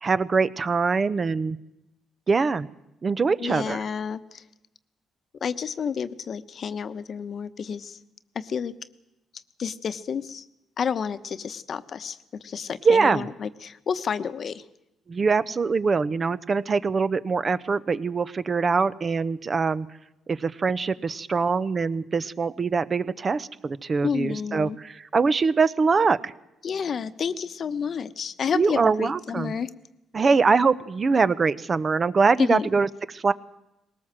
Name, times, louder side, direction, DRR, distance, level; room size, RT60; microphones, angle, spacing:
voice 1, 0.0-1.6 2.3-2.7 3.0-3.8 12.8-13.3 15.1-19.9 20.3-26.3 28.5-29.5 30.1-32.9 33.1-33.3, right 4 dB, 35° right, 15 dB, 0.8 m, -23 dB
voice 2, 3.4-4.4 5.4-8.0 8.3-8.7 9.6-10.4 10.8-14.6 24.0-24.8 26.6-29.7 32.4-32.7, left 7 dB, 55° left, 13 dB, 1.0 m, -30 dB
20.5 x 18.5 x 7.5 m, 0.90 s
cardioid pair, 90°, 0 cm